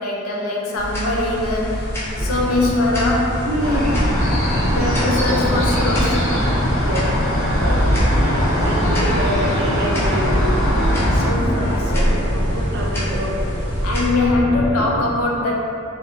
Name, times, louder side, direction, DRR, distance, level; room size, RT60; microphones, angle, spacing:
voice 1, 0.0-1.9 2.2-3.7 4.7-6.5 7.6-7.8 10.6-12.2 13.8-15.5, left 2 dB, 85° left, -2 dB, 0.5 m, -22 dB
sound 1, 0.7-14.1, equal, 10° left, 0.4 m, -26 dB
sound 2, 2.2-14.9, equal, 40° left, 0.9 m, -26 dB
voice 2, 3.5-3.9 6.9-7.1 7.4-7.8 8.6-10.4 12.3-13.4, equal, 55° right, -1 dB, 0.4 m, -26 dB
sound 3, 3.6-11.3, equal, 65° left, 0.9 m, -21 dB
2.7 x 2.1 x 2.8 m, 2.8 s
head